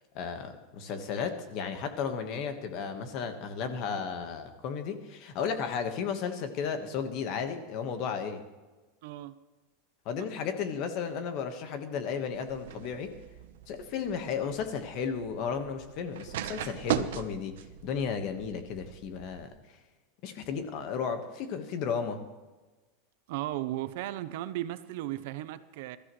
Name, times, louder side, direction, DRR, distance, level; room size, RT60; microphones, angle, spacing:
voice 1, 0.1-8.4 10.0-13.1 13.7-17.5 17.8-19.5 20.2-22.2, left 6 dB, 35° left, 7 dB, 1.4 m, -34 dB
voice 2, 9.0-9.3 23.3-26.0, right 14 dB, 55° right, 13 dB, 0.7 m, -35 dB
sound 1, 12.3-19.5, right 11 dB, 80° right, 0.9 m, -39 dB
21.0 x 13.5 x 3.2 m, 1.2 s
supercardioid pair, 175°, 0 cm